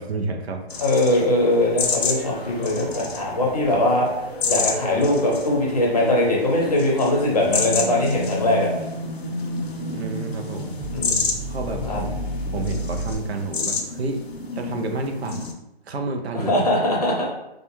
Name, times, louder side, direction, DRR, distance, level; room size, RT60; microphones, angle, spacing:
voice 1, 0.0-0.6 9.9-10.8 11.5-14.2 14.5-15.5 15.9-16.7, right 3 dB, 80° right, 5 dB, 0.5 m, -30 dB
sound 1, 0.7-15.5, left 4 dB, 75° left, 0.6 m, -30 dB
voice 2, 0.8-4.1 4.5-8.7 10.9-11.2 11.9-12.0 16.3-17.2, left 1 dB, 40° left, -3 dB, 0.6 m, -21 dB
sound 2, 2.0-13.1, equal, 15° right, 1.0 m, -32 dB
2.3 x 2.2 x 2.9 m, 0.92 s
hypercardioid pair, 170°, 31 cm